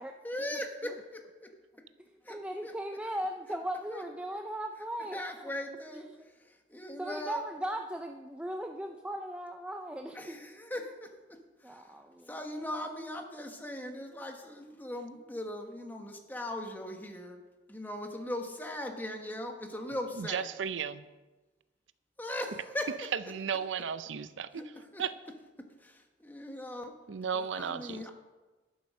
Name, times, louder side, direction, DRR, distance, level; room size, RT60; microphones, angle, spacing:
voice 1, 0.2-1.5 2.2-2.8 3.5-3.6 3.9-4.1 5.0-7.4 10.1-11.9 12.3-17.4 17.7-20.5 22.2-23.0 23.8-23.9 24.5-25.0 25.6-26.9 27.3-28.1, left 1 dB, 10° left, 4 dB, 1.2 m, -40 dB
voice 2, 2.3-5.2 7.0-10.4 11.6-12.3, right 1 dB, 5° right, 4 dB, 0.4 m, -37 dB
voice 3, 20.2-21.1 23.3-24.6 25.0-25.1 27.1-28.0, right 7 dB, 90° right, 14 dB, 0.5 m, -34 dB
12.0 x 7.8 x 6.3 m, 1.2 s
head